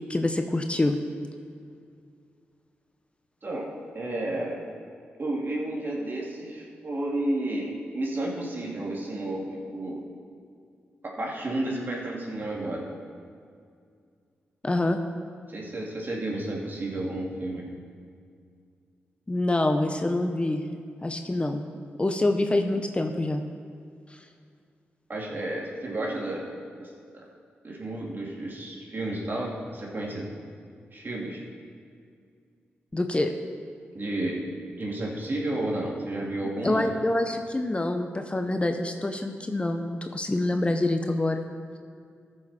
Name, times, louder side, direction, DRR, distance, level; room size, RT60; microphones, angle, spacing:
voice 1, 0.1-1.0 14.6-15.0 19.3-20.6 21.0-21.7 22.0-23.4 24.1-24.2 32.9-33.3 36.6-41.5, left 2 dB, 25° left, 6 dB, 0.8 m, -26 dB
voice 2, 3.9-4.6 5.2-10.0 11.0-12.9 15.5-17.7 25.1-26.4 26.8-27.2 27.6-30.3 30.9-31.4 33.9-34.4 34.8-36.9, right 1 dB, 45° right, -3 dB, 2.6 m, -31 dB
14.5 x 6.7 x 4.3 m, 2.3 s
supercardioid pair, 45°, 5 cm